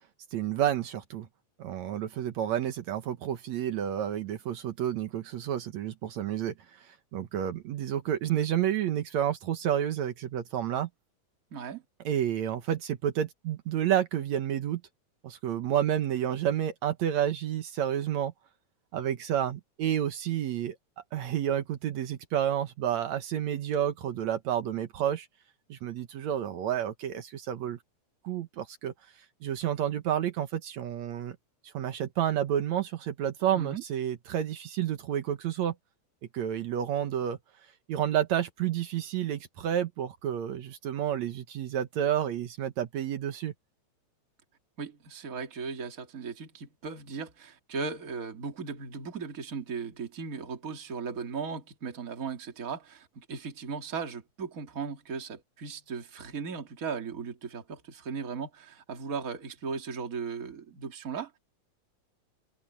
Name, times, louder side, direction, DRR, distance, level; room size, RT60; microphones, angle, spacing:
voice 1, 0.3-1.3 1.6-6.5 6.8-10.9 12.1-14.8 15.2-18.3 18.9-20.8 21.1-25.3 25.7-27.8 28.2-28.9 29.4-31.4 31.6-35.8 36.3-37.4 37.9-43.5, right 10 dB, 75° right, 2.4 m, -30 dB
voice 2, 11.5-11.8 33.5-33.8 44.8-61.4, right 5 dB, 30° right, 2.2 m, -37 dB
open air
omnidirectional pair, 3.3 m